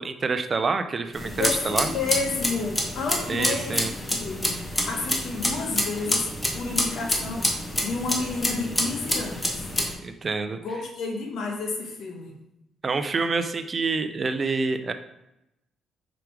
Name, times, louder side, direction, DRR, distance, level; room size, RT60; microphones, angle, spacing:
voice 1, 0.0-1.9 3.3-3.9 10.0-10.6 12.8-14.9, right 4 dB, 40° right, 9 dB, 0.5 m, -27 dB
sound 1, 1.1-9.9, left 1 dB, 15° left, 1.2 m, -28 dB
voice 2, 1.4-3.8 4.1-6.3 6.5-9.5 10.6-12.3, left 4 dB, 70° left, 1 dB, 1.4 m, -31 dB
5.0 x 4.7 x 4.7 m, 0.88 s
cardioid pair, 90°, 0 cm